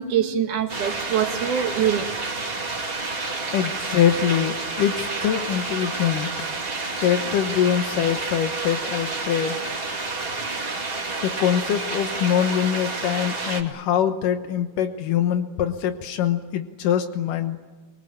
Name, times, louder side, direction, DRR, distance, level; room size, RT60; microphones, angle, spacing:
voice 1, 0.0-2.1, right 9 dB, 70° right, 4 dB, 3.5 m, -24 dB
sound 1, 0.7-13.6, right 3 dB, 20° right, 2.2 m, -29 dB
voice 2, 3.5-6.3 7.0-9.6 11.2-17.6, left 9 dB, 85° left, 7 dB, 2.8 m, -23 dB
24.5 x 23.5 x 9.1 m, 1.2 s
omnidirectional pair, 3.7 m